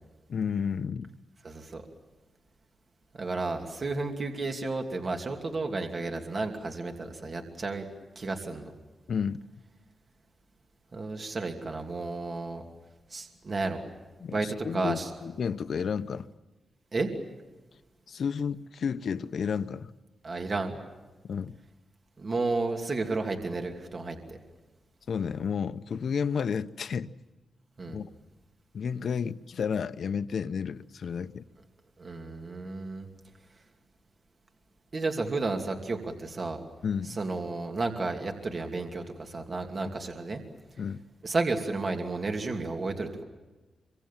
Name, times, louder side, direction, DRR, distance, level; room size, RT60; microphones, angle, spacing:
voice 1, 0.3-1.1 9.1-9.4 14.2-16.3 18.1-19.9 21.2-21.6 25.1-27.1 27.9-28.1 28.7-31.4 36.8-37.2 40.8-41.0, left 6 dB, 60° left, 0.8 m, -31 dB
voice 2, 1.4-1.8 3.1-7.9 8.2-8.7 10.9-12.6 13.1-13.8 14.3-15.1 16.9-17.1 20.2-20.8 22.2-24.4 27.8-28.0 32.0-33.1 34.9-36.6 37.2-40.4 41.2-43.2, right 3 dB, 35° right, 2.7 m, -32 dB
26.0 x 25.0 x 7.4 m
wide cardioid pair, 140°, 0 cm